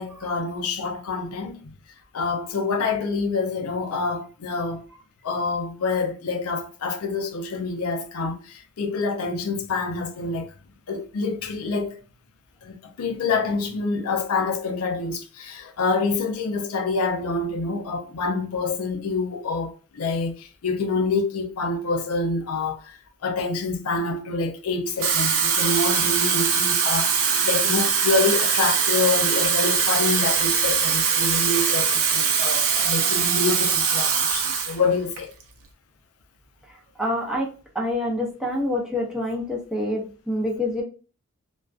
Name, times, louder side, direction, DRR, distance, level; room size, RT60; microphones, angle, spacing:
voice 1, 0.0-1.7 2.1-4.8 5.2-10.5 10.9-12.0 12.6-35.3, left 3 dB, 75° left, 0.4 m, -27 dB
Water tap faucet / Fill (with liquid), 24.9-34.8 35.2-35.4, right 6 dB, 65° right, 0.5 m, -22 dB
voice 2, 37.0-40.8, left 1 dB, 5° right, 0.5 m, -27 dB
2.4 x 2.2 x 2.3 m
head